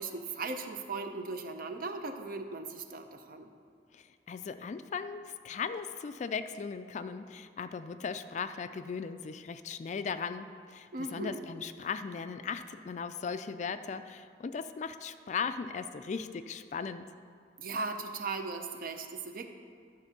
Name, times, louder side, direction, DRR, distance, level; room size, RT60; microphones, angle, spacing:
voice 1, 0.0-3.5 10.9-11.4 17.6-19.5, right 3 dB, 55° right, 6 dB, 0.6 m, -38 dB
voice 2, 3.9-17.1, left 5 dB, 40° left, 11 dB, 0.3 m, -38 dB
11.5 x 4.4 x 5.9 m, 2.3 s
head